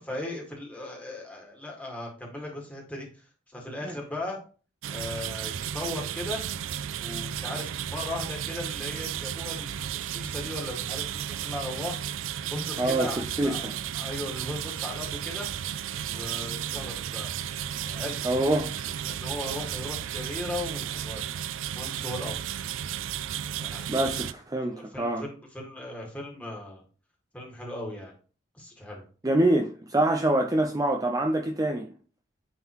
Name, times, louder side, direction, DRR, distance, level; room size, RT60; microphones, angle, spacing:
voice 1, 0.1-4.4 4.9-6.4 7.0-12.0 12.5-15.5 16.1-17.3 17.8-21.2 21.7-22.3 23.6-24.1 24.7-26.8 27.3-28.1 28.5-29.0, left 1 dB, 5° left, 1.9 m, -38 dB
sound 1, 4.8-24.3, right 10 dB, 85° right, 0.4 m, -34 dB
voice 2, 12.8-13.1 13.4-13.7 18.2-18.7 23.9-25.2 29.2-31.9, right 1 dB, 20° right, 0.5 m, -25 dB
9.2 x 3.7 x 3.0 m
head